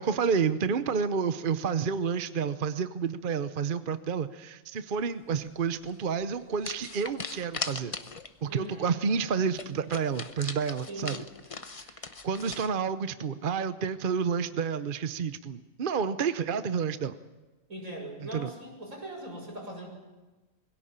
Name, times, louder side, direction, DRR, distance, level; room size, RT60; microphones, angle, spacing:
voice 1, 0.0-7.9 8.4-11.2 11.7-17.2 18.3-18.5, right 6 dB, 45° right, 11 dB, 0.9 m, -30 dB
sound 1, 5.8-6.0 6.6-8.4 8.7-8.8 9.1-9.2 9.5-12.7, left 4 dB, 30° left, 0.8 m, -39 dB
voice 2, 8.4-9.4 10.9-11.2 17.7-20.0, right 1 dB, 75° right, 0 dB, 6.7 m, -41 dB
21.5 x 17.0 x 8.8 m, 1.2 s
omnidirectional pair, 1.4 m